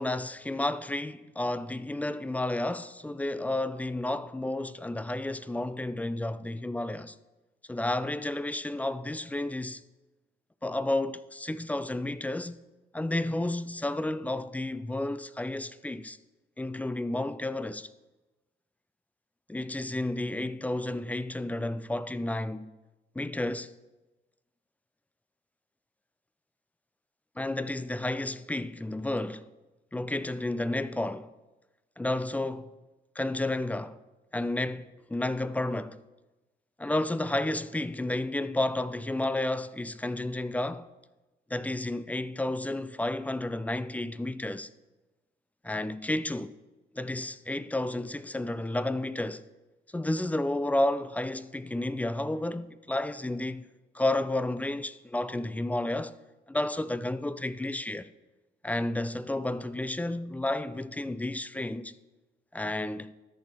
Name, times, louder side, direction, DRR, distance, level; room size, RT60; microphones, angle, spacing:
voice 1, 0.0-7.1 7.7-9.8 10.6-12.6 12.9-16.2 16.6-17.9 19.5-22.7 23.2-23.7 27.4-29.5 29.9-31.3 32.0-32.8 33.2-34.0 34.3-36.0 36.8-40.9 41.5-44.7 45.6-46.5 46.9-49.4 49.9-53.7 53.9-56.2 56.5-58.1 58.6-61.9 62.5-63.1, left 1 dB, 5° left, 0.3 m, -31 dB
13.0 x 5.4 x 4.2 m
cardioid pair, 90°, 20 cm